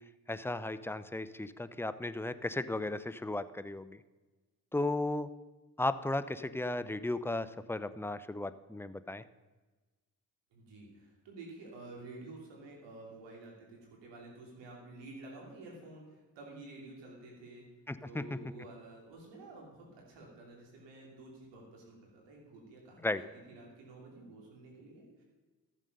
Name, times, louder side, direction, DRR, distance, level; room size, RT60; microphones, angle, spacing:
voice 1, 0.3-4.0 4.7-5.3 5.8-9.2 17.9-18.4 23.0-23.2, left 2 dB, 5° left, 13 dB, 0.6 m, -35 dB
voice 2, 10.5-17.7 18.0-25.2, right 2 dB, 85° right, -1 dB, 3.0 m, -51 dB
13.5 x 7.3 x 5.4 m, 1.3 s
supercardioid pair, 45°, 42 cm